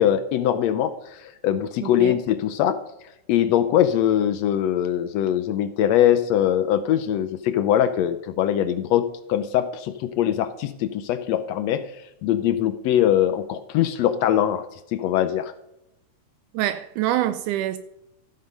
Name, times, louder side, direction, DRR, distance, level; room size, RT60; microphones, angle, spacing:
voice 1, 0.0-2.8 3.3-11.9 12.2-14.6 14.9-15.5, left 11 dB, 75° left, 1.6 m, -22 dB
voice 2, 1.8-2.2 16.5-17.8, right 13 dB, 80° right, 2.0 m, -25 dB
14.0 x 7.6 x 5.3 m
omnidirectional pair, 3.6 m